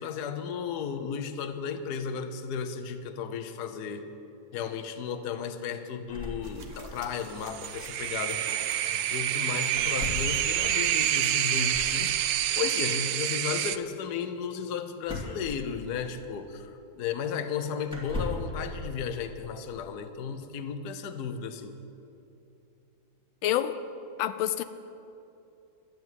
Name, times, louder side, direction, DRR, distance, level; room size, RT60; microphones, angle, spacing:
voice 1, 0.0-4.1 4.5-8.5 8.9-12.2 12.6-21.8, left 7 dB, 60° left, 8 dB, 1.3 m, -34 dB
sound 1, 6.1-7.1 7.4-7.5 7.7-7.9 9.7-10.4 11.7-12.1 15.0-16.2 17.0-17.1 17.9-18.6, left 2 dB, 5° right, 2.3 m, -37 dB
sound 2, 6.4-13.4, right 3 dB, 45° right, 1.4 m, -51 dB
sound 3, 7.4-13.8, right 12 dB, 70° right, 0.9 m, -28 dB
voice 2, 23.4-23.8 24.2-24.6, left 12 dB, 85° left, 11 dB, 1.4 m, -27 dB
12.5 x 9.5 x 9.1 m, 2.8 s
omnidirectional pair, 2.1 m